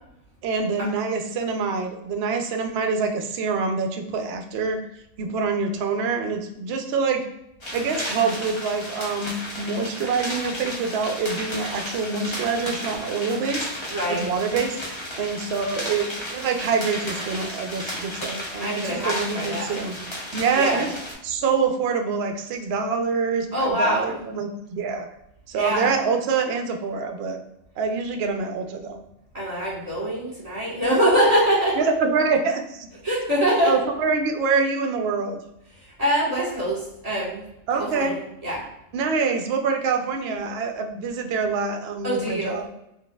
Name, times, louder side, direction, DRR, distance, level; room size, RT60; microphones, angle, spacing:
voice 1, 0.4-4.8 5.2-7.2 7.7-20.0 20.3-20.9 21.2-25.1 25.5-27.4 27.8-29.0 31.8-32.9 33.6-35.4 37.7-38.1 38.9-42.7, right 5 dB, 65° right, 4 dB, 0.7 m, -25 dB
sound 1, 7.6-21.1, left 1 dB, 40° left, 0.4 m, -34 dB
voice 2, 13.9-14.3 18.6-19.8 20.5-20.9 23.5-24.1 25.5-25.9 29.3-31.8 33.0-33.7 36.0-37.4 37.7-38.6 42.0-42.6, equal, 30° right, -5 dB, 1.2 m, -24 dB
4.0 x 2.6 x 2.2 m, 0.83 s
omnidirectional pair, 1.4 m